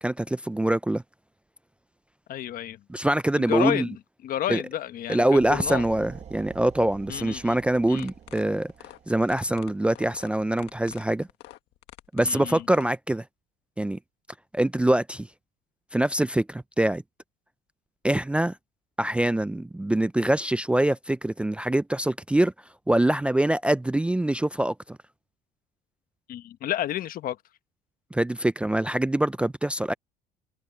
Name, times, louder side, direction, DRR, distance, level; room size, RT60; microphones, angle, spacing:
voice 1, 0.0-1.0 2.9-3.9 4.5-4.6 5.1-8.7 9.1-11.3 12.1-13.2 13.8-14.0 14.5-15.3 15.9-17.0 18.0-18.6 19.0-22.5 22.9-25.0 28.1-29.9, right 1 dB, 5° right, 0.4 m, -24 dB
voice 2, 2.3-2.8 3.3-5.9 7.1-7.6 7.9-8.1 12.2-12.7 26.3-27.4, left 12 dB, 55° left, 1.3 m, -31 dB
sound 1, 5.4-10.1, right 8 dB, 40° right, 1.1 m, -47 dB
sound 2, 7.9-12.9, left 16 dB, 75° left, 1.6 m, -47 dB
cardioid pair, 110°, 18 cm